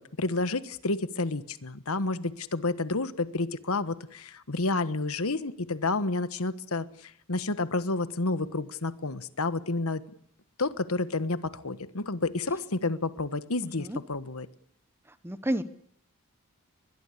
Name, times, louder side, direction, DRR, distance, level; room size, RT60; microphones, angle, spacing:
voice 1, 0.0-10.0 10.6-14.5, left 3 dB, 75° left, 13 dB, 1.3 m, -30 dB
voice 2, 15.2-15.6, right 1 dB, 10° right, 13 dB, 1.0 m, -29 dB
22.0 x 21.5 x 8.4 m, 0.71 s
head